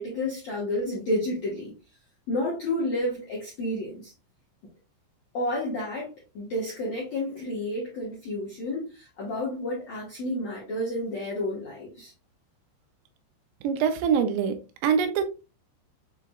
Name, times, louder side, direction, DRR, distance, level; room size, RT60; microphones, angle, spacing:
voice 1, 0.0-1.7 2.3-4.1 5.3-12.1, left 1 dB, 75° left, 1.6 m, -30 dB
voice 2, 13.6-14.6 14.8-15.2, right 7 dB, 80° right, 2.7 m, -23 dB
7.4 x 3.1 x 2.3 m
omnidirectional pair, 5.3 m